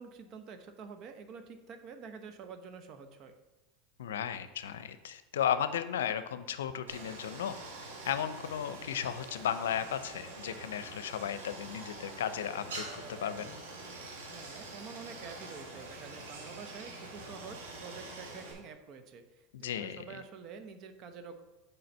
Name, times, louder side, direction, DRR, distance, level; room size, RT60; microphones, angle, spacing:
voice 1, 0.0-3.3 14.3-19.2 19.6-21.4, right 5 dB, 50° right, 8 dB, 1.0 m, -48 dB
voice 2, 4.0-7.5 8.0-13.6 19.5-20.2, left 9 dB, 85° left, 12 dB, 0.5 m, -35 dB
Stream, 6.9-18.5, right 2 dB, 85° right, 2.0 m, -45 dB
7.7 x 4.8 x 5.5 m, 1.1 s
hypercardioid pair, 100°, 0 cm